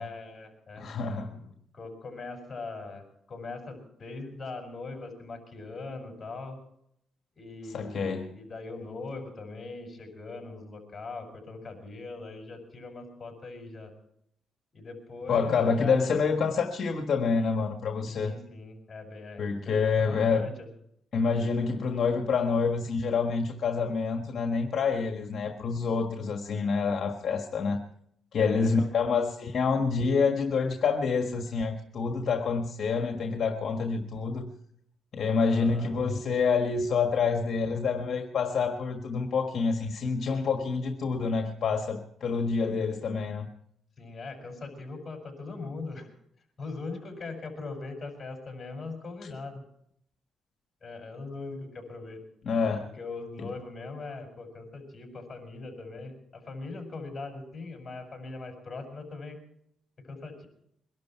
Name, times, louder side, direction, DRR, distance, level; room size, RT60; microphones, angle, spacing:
voice 1, 0.0-0.9 1.7-6.6 7.4-13.9 14.7-16.0 18.1-20.5 28.3-29.0 35.5-35.9 44.0-46.1 46.6-49.6 50.8-52.2 53.0-59.4 60.0-60.5, left 3 dB, 30° left, 3 dB, 6.4 m, -41 dB
voice 2, 0.8-1.4 7.6-8.3 15.3-18.3 19.4-20.5 21.1-27.8 28.3-34.5 35.1-43.5 49.2-49.3 52.4-52.9 53.4-53.5, left 5 dB, 55° left, 4 dB, 1.5 m, -27 dB
23.0 x 12.0 x 4.6 m, 0.72 s
cardioid pair, 90°, 0 cm